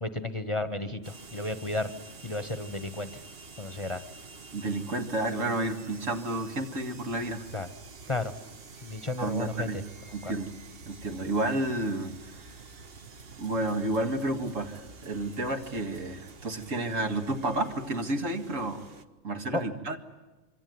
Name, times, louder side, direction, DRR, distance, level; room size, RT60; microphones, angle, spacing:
voice 1, 0.0-1.9 2.2-3.1 3.6-4.0 7.5-7.7 8.1-8.3 8.8-9.7 10.2-10.3 19.5-19.6, left 2 dB, 25° left, 11 dB, 1.1 m, -32 dB
sound 1, 1.0-19.0, right 4 dB, 50° right, 1.3 m, -48 dB
voice 2, 4.5-7.5 9.2-9.8 10.1-10.5 10.9-12.4 13.4-18.9 19.2-20.0, right 2 dB, 70° right, 5 dB, 2.4 m, -31 dB
25.5 x 24.5 x 9.4 m, 1.2 s
omnidirectional pair, 1.4 m